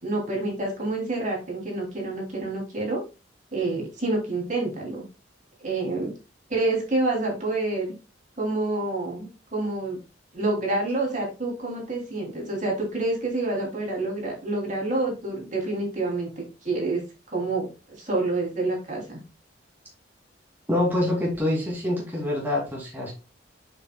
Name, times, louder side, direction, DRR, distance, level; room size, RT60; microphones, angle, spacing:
voice 1, 0.0-3.0 3.5-5.0 5.6-6.1 6.5-7.9 8.4-10.0 10.3-17.0 17.3-17.7 18.0-19.2, right 2 dB, 40° right, -1 dB, 3.0 m, -28 dB
voice 2, 20.7-23.1, left 1 dB, 10° right, -3 dB, 2.6 m, -25 dB
7.8 x 7.1 x 2.3 m, 0.30 s
head